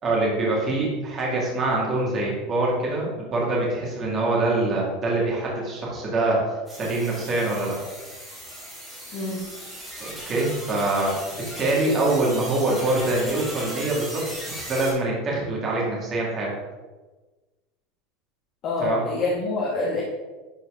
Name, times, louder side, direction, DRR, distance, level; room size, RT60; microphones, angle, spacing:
voice 1, 0.0-6.4 6.7-7.8 10.0-16.5 18.8-19.0, right 2 dB, 25° right, -4 dB, 2.1 m, -24 dB
sound 1, 6.7-14.9, equal, 5° right, 2.4 m, -37 dB
voice 2, 18.6-20.0, left 3 dB, 30° left, -4 dB, 1.3 m, -26 dB
11.5 x 4.5 x 3.7 m, 1.2 s
supercardioid pair, 180°, 0 cm